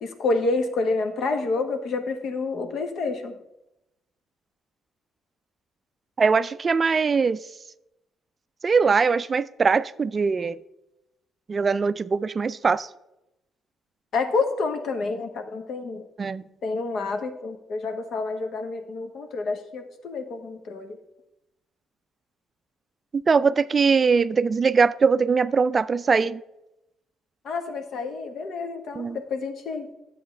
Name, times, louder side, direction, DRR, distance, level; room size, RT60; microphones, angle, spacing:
voice 1, 0.0-3.3 14.1-16.1 16.6-21.0 27.4-29.9, left 3 dB, 65° left, 7 dB, 1.1 m, -28 dB
voice 2, 6.2-7.4 8.6-10.6 11.5-12.9 16.2-16.4 23.3-26.4 28.9-29.2, right 5 dB, 35° right, 15 dB, 0.3 m, -21 dB
10.5 x 7.7 x 3.2 m, 0.89 s
cardioid pair, 90°, 0 cm